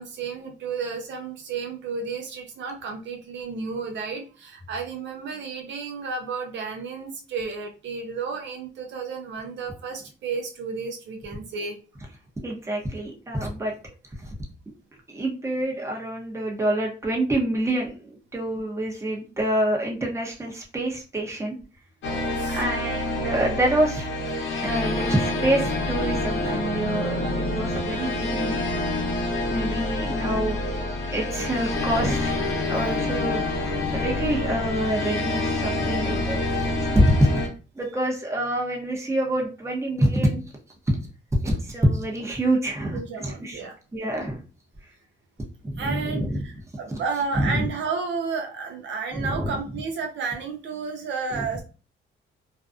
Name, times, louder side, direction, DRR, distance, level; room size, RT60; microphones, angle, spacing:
voice 1, 0.0-11.8 22.0-22.6 27.2-27.3 42.9-43.8 45.8-51.6, right 5 dB, 65° right, 3 dB, 0.5 m, -32 dB
voice 2, 12.4-13.7 15.1-21.6 22.5-24.1 24.6-28.6 29.5-30.6 31.1-32.4 32.7-33.4 33.9-37.2 37.8-40.4 41.4-43.6 43.9-44.4 45.6-46.4 47.4-47.7 49.1-49.6 51.3-51.4, right 1 dB, 15° right, -1 dB, 0.8 m, -26 dB
sound 1, 22.0-37.5, left 2 dB, 75° left, 0.8 m, -27 dB
2.5 x 2.2 x 2.3 m, 0.35 s
cardioid pair, 90°, 20 cm